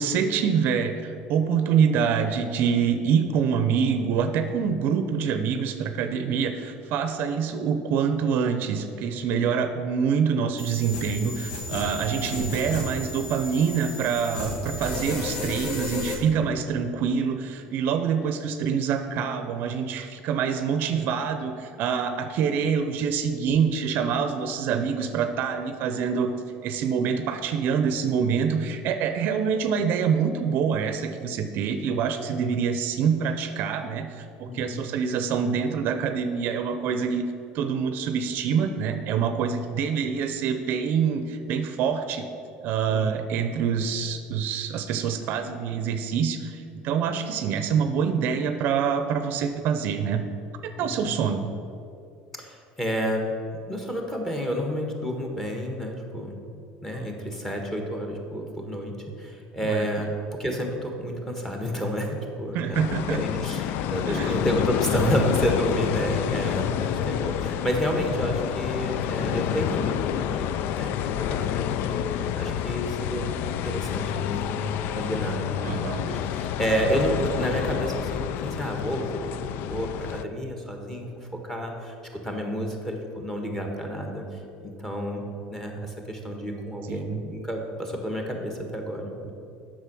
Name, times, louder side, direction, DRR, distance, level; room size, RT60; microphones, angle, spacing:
voice 1, 0.0-26.3 26.6-37.3 37.5-42.2 42.6-50.2 50.6-51.5 59.6-59.9 62.5-63.2 64.1-64.4 64.9-65.3 75.6-76.1 86.9-87.2, right 6 dB, 55° right, 8 dB, 0.6 m, -26 dB
sound 1, 10.6-16.1, left 1 dB, 80° left, 1.9 m, -33 dB
voice 2, 34.5-34.8 42.9-43.0 50.8-51.2 52.4-53.3 53.5-60.1 60.4-62.8 63.1-72.0 72.4-73.3 73.6-79.4 79.7-81.1 81.4-81.9 82.2-85.2 85.5-89.3, equal, 10° left, 2 dB, 1.4 m, -30 dB
sound 2, 62.7-80.2, left 10 dB, 60° left, 0.4 m, -29 dB
8.2 x 6.3 x 6.1 m, 2.6 s
supercardioid pair, 125°, 4 cm